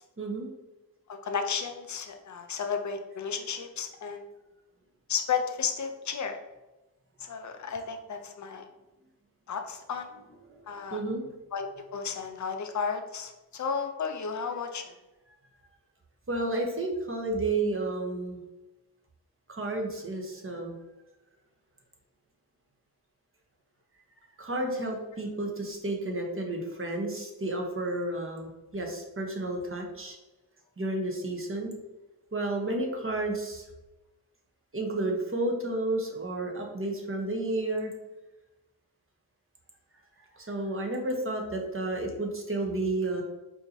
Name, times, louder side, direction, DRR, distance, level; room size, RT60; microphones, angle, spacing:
voice 1, 0.2-0.5 10.5-10.6 10.9-11.2 16.3-18.4 19.5-20.8 24.4-30.2 30.8-31.7 32.3-33.6 34.7-37.9 40.2-43.2, right 2 dB, 35° right, 1 dB, 1.0 m, -31 dB
voice 2, 1.1-4.3 5.1-6.4 7.2-8.6 9.5-10.1 10.7-11.0 11.5-14.9, left 6 dB, 50° left, 6 dB, 0.6 m, -33 dB
4.6 x 2.8 x 2.7 m, 1.0 s
cardioid pair, 45°, 38 cm